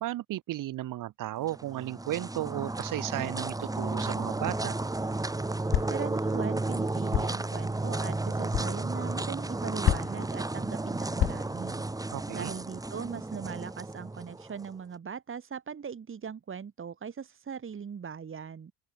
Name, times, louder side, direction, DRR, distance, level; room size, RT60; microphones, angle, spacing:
voice 1, 0.0-4.8 12.1-12.5, right 15 dB, 45° right, 1.9 m, -34 dB
sound 1, 1.4-14.7, right 2 dB, 10° right, 1.6 m, -33 dB
sound 2, 4.5-4.8 5.7-6.1 7.1-7.5 8.5-8.7 9.8-10.3 11.2-11.6, left 11 dB, 30° left, 0.7 m, -29 dB
voice 2, 5.9-11.8 12.3-18.7, right 6 dB, 30° right, 3.4 m, -40 dB
open air
figure-of-eight pair, 65°, 43 cm